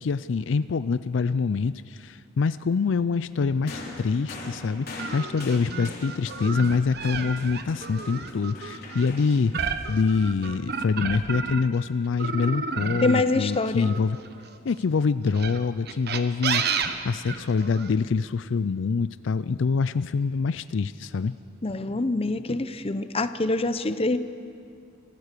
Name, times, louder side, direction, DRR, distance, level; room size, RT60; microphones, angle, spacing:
voice 1, 0.0-14.2 14.7-21.3, left 5 dB, 70° left, 15 dB, 0.4 m, -25 dB
sound 1, 3.7-11.2 12.2-12.3, left 2 dB, 50° left, 3.6 m, -42 dB
sound 2, 5.0-11.8 12.2-14.6 15.3-17.9, right 5 dB, 55° right, 1.1 m, -31 dB
voice 2, 13.0-13.9 21.6-24.2, left 2 dB, 30° left, 12 dB, 0.7 m, -25 dB
26.5 x 15.0 x 6.7 m, 2.4 s
head